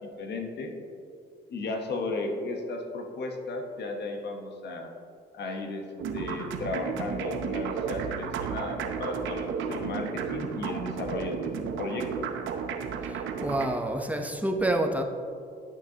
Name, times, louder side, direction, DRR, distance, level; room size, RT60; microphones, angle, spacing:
voice 1, 0.0-0.7 1.5-4.9 5.3-5.8 6.1-12.3, left 2 dB, 60° left, 3 dB, 1.1 m, -34 dB
sound 1, 6.0-13.7, right 6 dB, 80° right, 0.7 m, -33 dB
voice 2, 13.0-15.0, right 1 dB, 5° right, 3 dB, 0.7 m, -28 dB
10.5 x 6.5 x 2.8 m, 2.4 s
cardioid pair, 90°, 20 cm